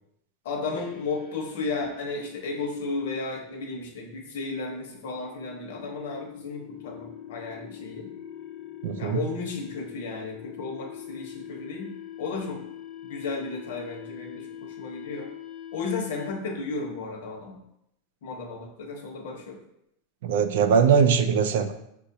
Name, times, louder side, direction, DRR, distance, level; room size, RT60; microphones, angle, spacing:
voice 1, 0.4-8.1 9.0-11.9 12.2-12.6 13.0-15.3 15.7-17.6 18.2-19.6, left 3 dB, 70° left, 0 dB, 1.0 m, -34 dB
sound 1, 0.7-16.7, left 10 dB, 45° left, 0.6 m, -44 dB
voice 2, 8.8-9.2 20.2-21.7, right 6 dB, 65° right, 9 dB, 0.4 m, -21 dB
6.0 x 2.5 x 2.7 m, 0.79 s
supercardioid pair, 175°, 0 cm